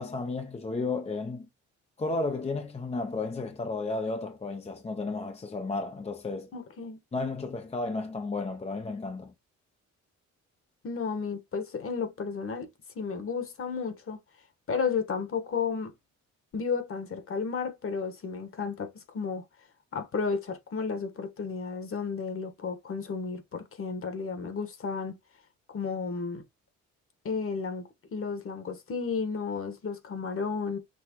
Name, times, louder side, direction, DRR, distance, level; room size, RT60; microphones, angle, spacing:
voice 1, 0.0-1.5 2.0-6.5 7.1-9.3, left 3 dB, 20° left, 0.6 m, -33 dB
voice 2, 6.5-7.0 10.8-12.7 12.9-14.2 14.7-15.9 16.5-19.4 19.9-25.1 25.7-26.4 27.2-30.8, left 5 dB, 45° left, 1.4 m, -33 dB
6.1 x 2.9 x 3.0 m
cardioid pair, 90°, 30 cm